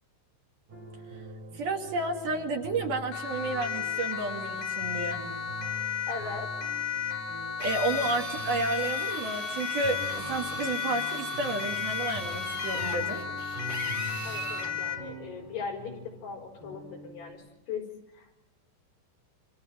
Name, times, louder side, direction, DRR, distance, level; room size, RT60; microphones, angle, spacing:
sound 1, 0.7-17.3, right 1 dB, 40° right, 9.2 m, -44 dB
voice 1, 1.5-5.2 7.6-13.2, right 3 dB, 55° right, 1 dB, 3.8 m, -31 dB
Siren, 3.1-15.1, left 8 dB, 80° left, 5.4 m, -34 dB
voice 2, 6.1-6.5 14.2-17.9 18.1-18.4, left 5 dB, 60° left, 2 dB, 6.5 m, -39 dB
Drill, 7.6-14.7, right 2 dB, 15° right, 2.7 m, -40 dB
29.5 x 26.0 x 4.4 m, 0.99 s
omnidirectional pair, 5.5 m